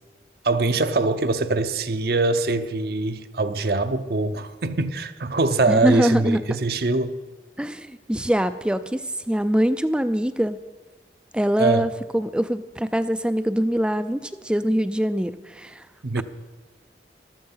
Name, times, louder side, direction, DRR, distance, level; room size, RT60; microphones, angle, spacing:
voice 1, 0.4-7.2 11.6-11.9 16.0-16.2, right 3 dB, 60° right, 0.6 m, -23 dB
voice 2, 5.7-6.6 7.6-10.6 11.3-15.8 16.2-16.3, equal, 5° right, 0.3 m, -23 dB
14.5 x 12.0 x 5.6 m
head